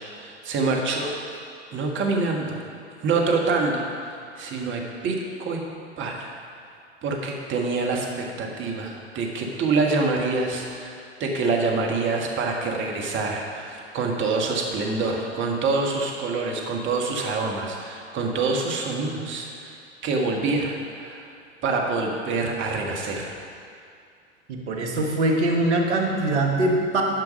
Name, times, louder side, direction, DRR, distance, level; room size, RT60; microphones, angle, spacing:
voice 1, 0.2-1.1 1.7-2.6 3.0-5.6 6.0-6.3 7.0-19.8 20.0-21.3 21.6-23.3, right 3 dB, 35° right, 0 dB, 1.6 m, -26 dB
voice 2, 24.5-27.0, right 2 dB, 70° right, 0 dB, 1.6 m, -22 dB
11.0 x 5.7 x 5.3 m, 2.3 s
figure-of-eight pair, 90°, 35 cm